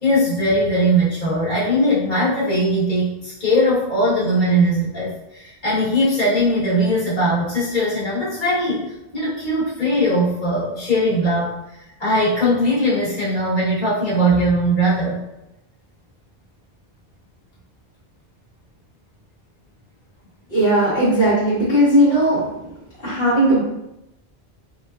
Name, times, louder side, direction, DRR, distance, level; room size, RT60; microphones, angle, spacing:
voice 1, 0.0-8.8 9.1-11.5 12.0-15.2, equal, 45° left, -9 dB, 1.4 m, -20 dB
voice 2, 20.5-22.5 23.0-23.6, right 1 dB, 65° left, -11 dB, 1.2 m, -17 dB
4.1 x 2.4 x 2.3 m, 0.90 s
omnidirectional pair, 1.1 m